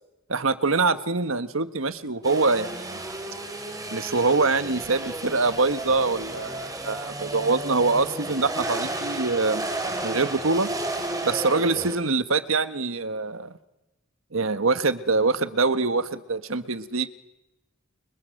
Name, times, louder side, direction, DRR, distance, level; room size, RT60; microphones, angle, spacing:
voice 1, 0.3-3.0 3.9-9.7 10.0-10.7 11.2-13.5 14.3-17.1, right 3 dB, 80° right, 11 dB, 1.4 m, -24 dB
sound 1, 2.2-12.0, right 2 dB, 15° right, 3.9 m, -33 dB
30.0 x 30.0 x 6.6 m, 1.0 s
head